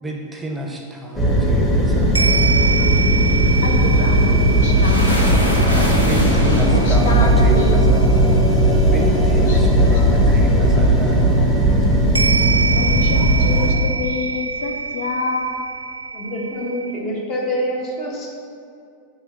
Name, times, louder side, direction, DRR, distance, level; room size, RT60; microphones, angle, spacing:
voice 1, 0.0-2.7 5.8-8.3 8.9-11.7, right 1 dB, 10° right, 1 dB, 0.7 m, -29 dB
sound 1, 1.2-13.7, right 1 dB, 10° left, 1.2 m, -16 dB
sound 2, 2.1-10.2 12.1-17.0, right 5 dB, 80° right, 0.4 m, -26 dB
voice 2, 3.6-5.2 6.2-7.8 9.4-10.2 12.7-15.8, left 4 dB, 55° left, 3 dB, 0.4 m, -27 dB
sound 3, 4.3-14.7, left 1 dB, 75° left, 1.0 m, -27 dB
voice 3, 16.1-18.3, equal, 35° left, -1 dB, 1.3 m, -26 dB
6.8 x 3.3 x 5.9 m, 2.4 s
figure-of-eight pair, 90°, 0 cm